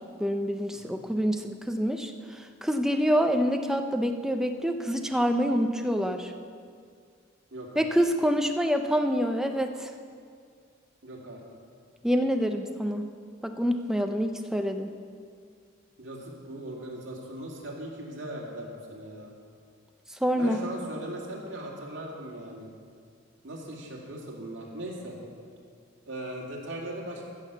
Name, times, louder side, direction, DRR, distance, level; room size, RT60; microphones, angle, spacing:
voice 1, 0.2-6.3 7.8-9.9 12.0-13.1 13.4-14.9 20.1-20.7, equal, ahead, 5 dB, 0.5 m, -26 dB
voice 2, 7.5-7.9 11.0-11.4 16.0-19.4 20.3-22.7 23.4-25.1 26.1-27.2, right 1 dB, 60° right, -2 dB, 2.4 m, -39 dB
15.0 x 6.5 x 6.8 m, 2.1 s
head